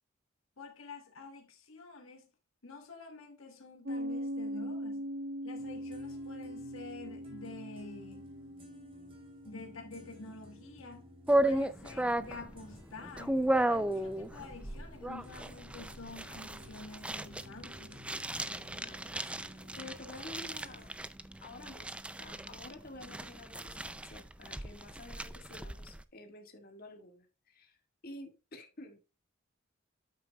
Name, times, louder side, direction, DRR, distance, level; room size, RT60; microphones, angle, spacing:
voice 1, 0.6-2.3 2.6-5.0 5.4-8.3 9.4-11.1 11.4-13.4 13.7-18.0, left 3 dB, 75° left, 1.4 m, -48 dB
Piano, 3.8-11.1, equal, 60° right, 1.0 m, -41 dB
sound 1, 5.6-20.9, left 1 dB, 25° right, 3.2 m, -56 dB
sound 2, 11.3-26.0, right 1 dB, 5° right, 0.4 m, -34 dB
voice 2, 18.8-20.9 21.4-27.8 28.0-29.1, left 2 dB, 45° left, 1.7 m, -50 dB
9.2 x 8.5 x 2.3 m
head